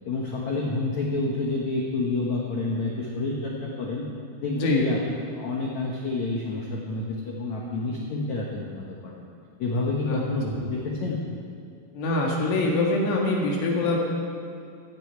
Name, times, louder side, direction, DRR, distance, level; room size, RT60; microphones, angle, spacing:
voice 1, 0.0-4.1 4.4-5.0 5.3-9.3 9.6-11.2, left 2 dB, 85° left, -2 dB, 1.6 m, -28 dB
voice 2, 11.9-14.0, left 2 dB, 65° left, -2 dB, 3.8 m, -24 dB
16.0 x 15.5 x 4.7 m, 2.5 s
omnidirectional pair, 5.6 m